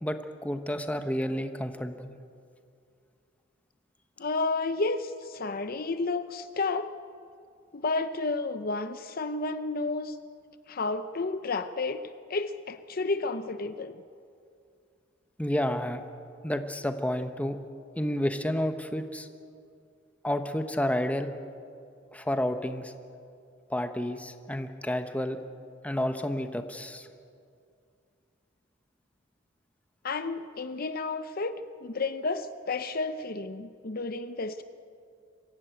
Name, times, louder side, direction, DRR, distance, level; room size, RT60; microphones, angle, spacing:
voice 1, 0.0-2.1 15.4-16.0 16.4-17.6 18.0-19.3 20.2-21.3 22.1-22.9 23.7-25.4 25.8-27.1, left 1 dB, 10° left, 7 dB, 1.0 m, -30 dB
voice 2, 4.2-6.9 7.7-10.2 10.7-12.0 12.3-14.0 30.0-34.6, left 3 dB, 50° left, 11 dB, 0.7 m, -31 dB
23.5 x 15.5 x 9.1 m, 2.4 s
head